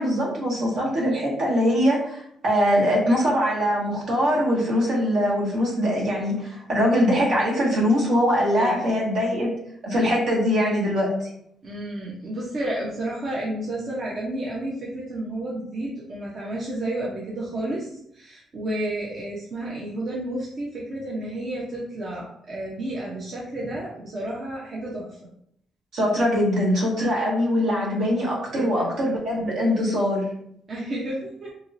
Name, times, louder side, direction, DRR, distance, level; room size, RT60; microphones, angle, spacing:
voice 1, 0.0-9.5 9.8-11.3 25.9-30.3, equal, 70° right, -4 dB, 1.2 m, -22 dB
voice 2, 8.6-8.9 11.6-25.1 28.5-28.9 30.7-31.5, right 1 dB, 45° right, -5 dB, 0.7 m, -31 dB
2.9 x 2.7 x 2.6 m, 0.71 s
cardioid pair, 90°, 0 cm